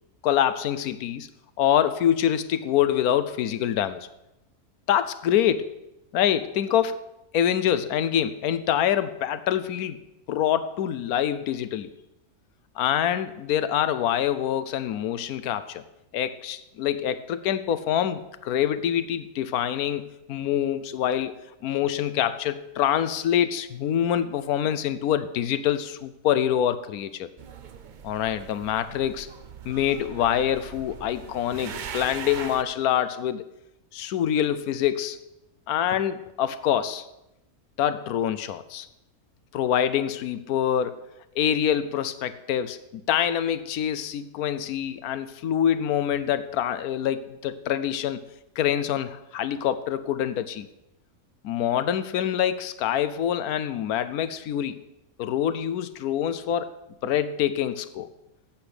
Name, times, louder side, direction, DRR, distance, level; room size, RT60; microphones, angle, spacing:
voice 1, 0.2-1.3 1.6-4.1 4.9-5.7 6.1-7.0 7.3-10.0 10.3-11.9 12.8-15.8 16.1-21.4 21.6-27.3 28.0-29.3 29.6-33.4 33.9-35.2 35.7-37.0 37.8-38.9 39.5-41.1 41.4-48.2 48.6-50.7 51.4-54.8 55.2-58.1, left 10 dB, 90° left, 13 dB, 1.2 m, -25 dB
sound 1, 27.4-32.6, right 7 dB, 60° right, 0.4 m, -40 dB
8.8 x 8.1 x 6.6 m, 0.89 s
omnidirectional pair, 1.5 m